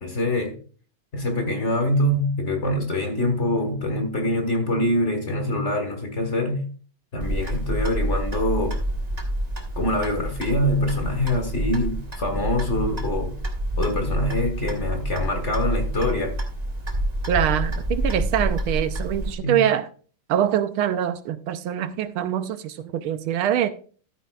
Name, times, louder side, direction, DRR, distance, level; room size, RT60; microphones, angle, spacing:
voice 1, 0.0-0.6 1.1-6.6 7.1-8.8 9.7-13.3 13.8-16.4 19.4-19.6, left 1 dB, 35° left, 1.6 m, -24 dB
Clock, 7.2-19.3, right 1 dB, 25° right, 1.2 m, -28 dB
voice 2, 17.3-19.9 20.3-23.7, right 10 dB, 80° right, 1.5 m, -24 dB
13.5 x 8.6 x 2.4 m
omnidirectional pair, 2.4 m